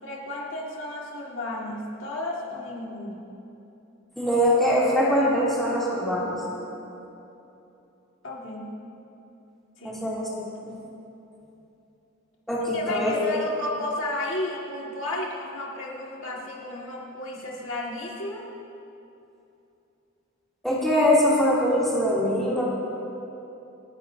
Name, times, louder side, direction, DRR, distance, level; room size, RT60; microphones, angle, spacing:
voice 1, 0.0-3.3 8.2-8.7 9.8-10.0 10.4-10.7 12.7-18.4, left 2 dB, 65° left, -4 dB, 2.0 m, -33 dB
voice 2, 4.2-6.4 9.8-10.3 10.7-10.8 12.5-13.1 20.6-22.6, equal, ahead, -9 dB, 2.8 m, -22 dB
29.5 x 9.9 x 2.7 m, 2.9 s
head